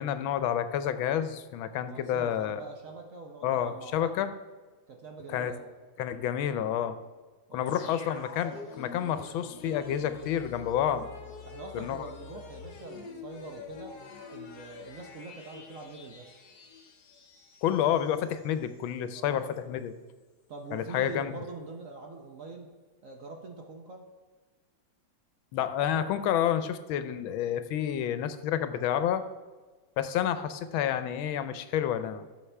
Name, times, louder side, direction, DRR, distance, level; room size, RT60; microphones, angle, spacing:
voice 1, 0.0-2.6 3.4-4.3 5.3-5.5 6.0-7.0 7.5-11.1 11.7-12.0 17.6-19.9 20.7-21.3 25.5-29.2 30.0-32.3, left 10 dB, 90° left, 11 dB, 1.5 m, -29 dB
voice 2, 1.8-4.2 4.9-5.7 7.5-8.0 11.4-14.0 14.3-16.4 19.1-19.4 20.5-22.7 23.0-24.1, right 3 dB, 60° right, 2 dB, 0.9 m, -44 dB
sound 1, 7.7-18.5 18.8-18.9, left 5 dB, 60° left, 1.4 m, -46 dB
14.0 x 7.0 x 3.3 m, 1.3 s
omnidirectional pair, 2.1 m